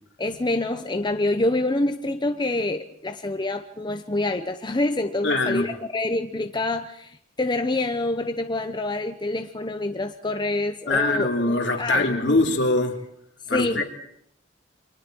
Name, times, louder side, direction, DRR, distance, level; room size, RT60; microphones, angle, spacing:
voice 1, 0.2-12.4 13.5-13.8, left 2 dB, 25° left, 7 dB, 0.9 m, -27 dB
voice 2, 5.2-5.7 10.9-13.0 13.5-13.8, left 2 dB, 70° left, 2 dB, 3.0 m, -22 dB
29.0 x 24.0 x 4.6 m, 0.71 s
head